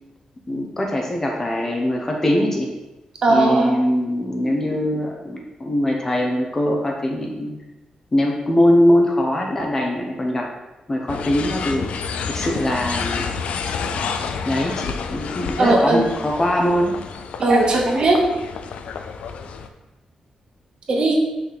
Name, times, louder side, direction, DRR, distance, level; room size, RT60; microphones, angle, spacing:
voice 1, 0.5-2.7 3.3-7.6 8.1-10.5 10.9-11.8 12.3-13.2 13.9-14.1 14.4-16.9, left 1 dB, 20° left, 0 dB, 0.8 m, -21 dB
voice 2, 3.2-3.7 15.6-16.1 17.4-18.2 20.9-21.1, right 2 dB, 45° right, 0 dB, 1.0 m, -17 dB
sound 1, 11.1-19.7, left 5 dB, 70° left, 0.4 m, -29 dB
5.9 x 3.2 x 5.7 m, 1.0 s
wide cardioid pair, 170°, 2 cm